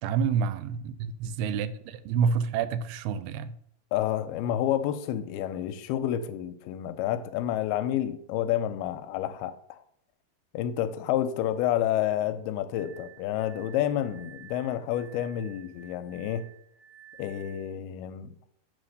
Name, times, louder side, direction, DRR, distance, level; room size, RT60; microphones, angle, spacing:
voice 1, 0.0-3.5, right 6 dB, 85° right, 14 dB, 2.5 m, -28 dB
voice 2, 3.9-9.8 10.5-16.5 17.2-18.4, left 11 dB, 80° left, 10 dB, 2.4 m, -29 dB
Glass, 12.7-17.8, right 11 dB, 65° right, 1.5 m, -52 dB
7.5 x 4.1 x 6.4 m, 0.68 s
omnidirectional pair, 4.6 m